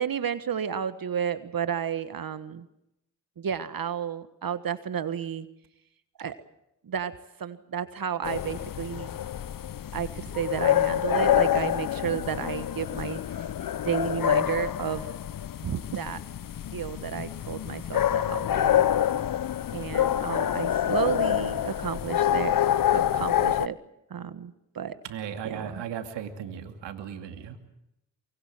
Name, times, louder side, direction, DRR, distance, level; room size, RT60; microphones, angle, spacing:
voice 1, 0.0-2.7 3.4-5.5 6.2-6.3 6.8-7.1 7.4-9.1 9.9-13.2 13.8-15.1 15.6-16.2 16.7-18.9 19.7-22.6 22.9-23.8 24.1-25.0 25.4-25.8, right 8 dB, 55° right, 12 dB, 1.5 m, -32 dB
sound 1, 8.2-23.7, left 11 dB, 50° left, 0.8 m, -27 dB
voice 2, 25.0-27.7, right 8 dB, 80° right, 6 dB, 2.6 m, -36 dB
24.0 x 23.0 x 7.6 m, 0.84 s
supercardioid pair, 40°, 42 cm